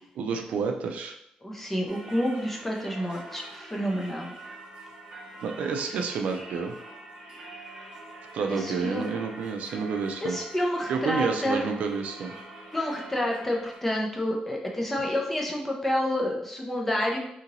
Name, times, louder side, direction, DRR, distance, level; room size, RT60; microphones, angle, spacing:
voice 1, 0.2-1.1 5.4-6.7 8.3-10.4 10.9-12.3, right 5 dB, 65° right, 3 dB, 0.3 m, -29 dB
voice 2, 1.4-4.3 8.5-9.1 10.2-11.6 12.7-17.2, left 1 dB, 10° left, 0 dB, 0.4 m, -29 dB
Singing / Church bell, 1.9-13.8, right 2 dB, 45° right, 0.9 m, -44 dB
2.8 x 2.7 x 2.6 m, 0.77 s
wide cardioid pair, 175°, 3 cm